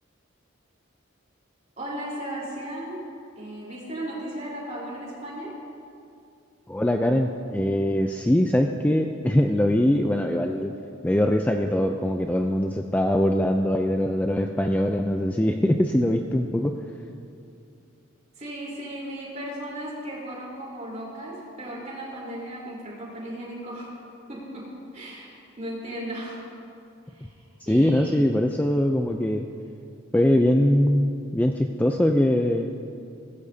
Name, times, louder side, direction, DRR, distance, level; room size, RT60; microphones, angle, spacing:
voice 1, 1.8-3.0 3.4-5.6 18.4-23.9 24.3-26.5 27.1-27.3 27.7-28.2, right 1 dB, 35° right, -5 dB, 3.7 m, -36 dB
voice 2, 6.7-10.7 11.0-16.8 27.6-29.5 30.1-32.7, left 1 dB, 10° left, 4 dB, 0.3 m, -22 dB
18.0 x 15.0 x 2.7 m, 2.5 s
head